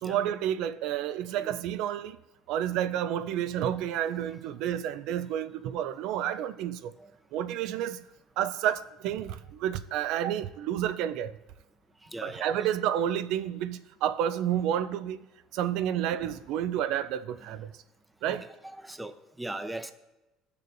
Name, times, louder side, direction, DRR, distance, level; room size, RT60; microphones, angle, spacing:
voice 1, 0.0-2.2 2.5-6.9 7.3-8.1 8.4-11.4 12.2-15.2 15.5-17.7 18.2-18.5, right 10 dB, 70° right, 0.4 m, -30 dB
voice 2, 12.1-12.5 18.2-18.4 18.8-19.9, right 1 dB, 10° right, 0.7 m, -38 dB
15.0 x 6.7 x 2.6 m
supercardioid pair, 90°, 0 cm